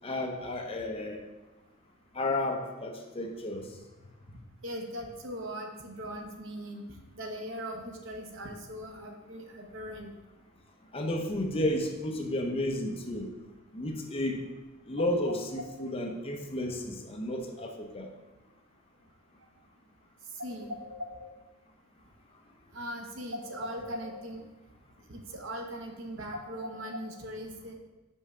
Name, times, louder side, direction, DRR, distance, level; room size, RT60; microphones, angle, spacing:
voice 1, 0.0-1.2 2.1-3.8 10.9-13.3 13.7-14.4 14.9-18.1, left 1 dB, 25° left, 2 dB, 0.6 m, -32 dB
voice 2, 4.6-6.8 7.1-10.1 20.4-21.1 22.7-24.5 25.1-27.8, equal, 65° right, 3 dB, 0.8 m, -39 dB
5.4 x 3.6 x 5.5 m, 1.1 s
head